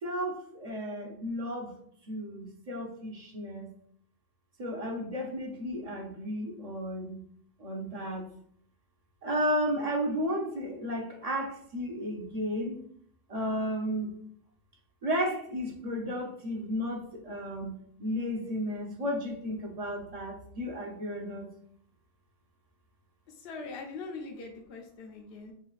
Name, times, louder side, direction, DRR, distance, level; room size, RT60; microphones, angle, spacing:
voice 1, 0.0-1.7 2.1-3.7 4.6-7.2 7.6-8.3 9.2-12.8 13.3-14.1 15.0-17.7 18.0-21.5, equal, 35° right, 0 dB, 0.8 m, -33 dB
voice 2, 23.3-25.5, left 3 dB, 65° left, 1 dB, 0.8 m, -42 dB
6.2 x 2.3 x 2.4 m, 0.63 s
omnidirectional pair, 1.2 m